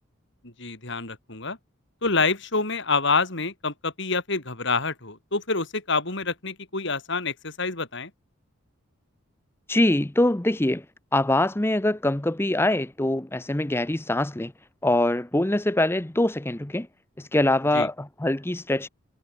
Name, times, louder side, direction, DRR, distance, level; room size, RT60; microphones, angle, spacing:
voice 1, 0.4-1.6 2.0-8.1 17.7-17.9, left 4 dB, 60° left, 4.3 m, -27 dB
voice 2, 9.7-10.8 11.1-14.5 14.8-16.9 17.2-18.9, left 1 dB, 10° left, 0.7 m, -23 dB
head